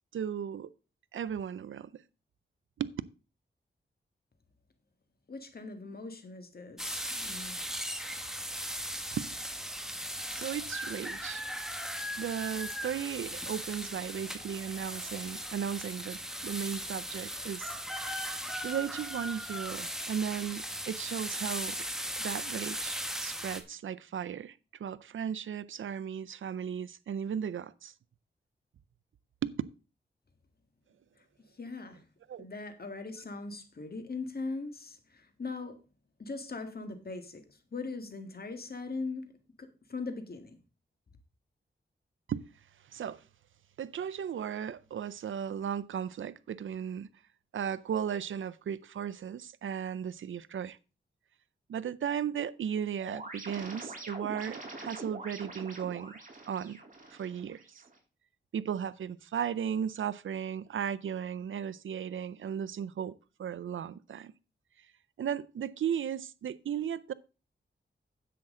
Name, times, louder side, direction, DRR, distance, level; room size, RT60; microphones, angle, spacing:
voice 1, 0.1-0.7 1.1-2.0 2.8-2.9 9.2-9.3 10.3-11.5 12.2-17.8 18.6-21.8 22.2-27.9 29.4-29.5 32.3-32.4 42.3-42.4 42.9-43.2 43.8-47.1 47.5-50.8 51.7-56.1 56.5-56.8 57.1-57.8 58.5-63.1 63.4-64.3 65.2-67.1, right 8 dB, 85° right, 0.5 m, -36 dB
voice 2, 5.3-7.6 31.6-32.0 32.4-35.8 36.2-37.4 37.7-39.2 39.6-40.6, left 3 dB, 50° left, 1.8 m, -40 dB
sound 1, 6.8-23.6, equal, ahead, 1.4 m, -38 dB
sound 2, 53.0-58.0, right 2 dB, 40° right, 3.5 m, -44 dB
10.0 x 7.6 x 3.8 m
cardioid pair, 70°, 20 cm